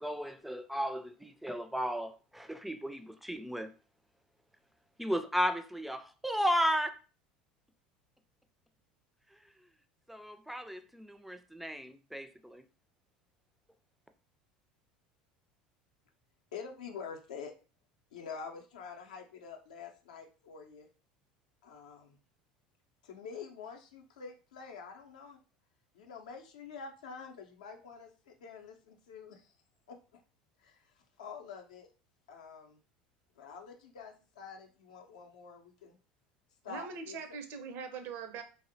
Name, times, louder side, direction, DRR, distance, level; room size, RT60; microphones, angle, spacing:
voice 1, 0.0-3.7 5.0-6.9 10.1-12.6, equal, 5° right, 0.3 m, -34 dB
voice 2, 16.5-17.5 18.1-20.9 21.6-22.1 23.0-25.4 25.9-29.5 29.9-30.0 30.6-30.8 31.2-31.9 32.3-32.8 33.4-36.0 36.6-37.2, left 5 dB, 80° left, 0.5 m, -47 dB
voice 3, 36.7-38.4, right 5 dB, 55° right, 0.5 m, -42 dB
2.6 x 2.0 x 2.6 m
hypercardioid pair, 75°, 4 cm